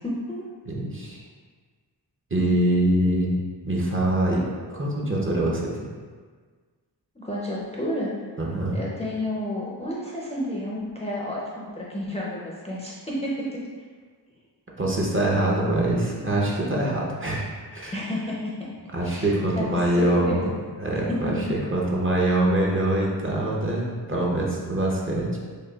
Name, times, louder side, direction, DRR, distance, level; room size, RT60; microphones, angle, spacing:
voice 1, 0.0-0.4 2.4-2.8 7.2-8.1 8.7-13.6 17.9-18.7 19.0-20.5 21.1-21.4, left 1 dB, 15° left, -6 dB, 0.5 m, -31 dB
voice 2, 0.7-1.2 2.3-3.4 3.6-5.9 8.4-8.8 14.8-18.0 18.9-20.4 20.8-25.4, right 1 dB, 30° right, -4 dB, 0.6 m, -24 dB
6.3 x 2.3 x 2.3 m, 1.6 s
wide cardioid pair, 125°, 41 cm